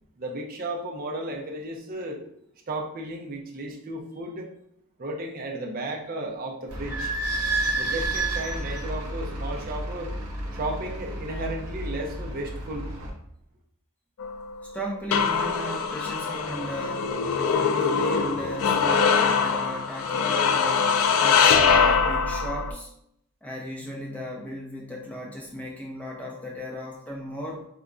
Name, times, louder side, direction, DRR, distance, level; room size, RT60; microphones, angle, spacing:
voice 1, 0.2-2.2 2.7-4.5 5.0-7.1 7.7-10.1 10.5-12.9, right 1 dB, 40° right, 1 dB, 0.5 m, -34 dB
Idling / Squeak, 6.7-13.1, right 2 dB, 85° right, 0.9 m, -31 dB
sound 1, 14.2-22.7, left 6 dB, 75° left, 0.3 m, -23 dB
voice 2, 14.7-22.9 23.4-27.7, equal, 5° left, -2 dB, 0.5 m, -36 dB
4.5 x 2.1 x 2.5 m, 0.72 s
head